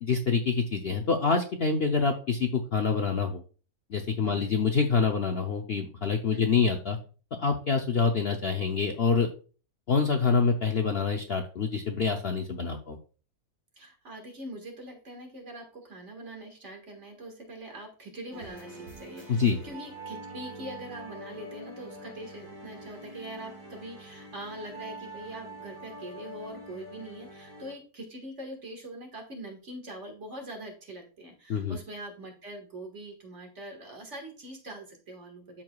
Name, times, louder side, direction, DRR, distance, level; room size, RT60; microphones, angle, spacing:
voice 1, 0.0-3.4 3.9-7.0 7.4-9.3 9.9-13.0 19.3-19.6 31.5-31.8, left 5 dB, 55° left, 3 dB, 0.7 m, -26 dB
voice 2, 4.2-4.6 6.3-6.4 13.8-35.6, right 1 dB, 50° right, 2 dB, 2.0 m, -43 dB
sound 1, 18.3-27.7, right 1 dB, 90° right, 2.4 m, -45 dB
13.0 x 4.6 x 2.3 m, 0.37 s
omnidirectional pair, 1.7 m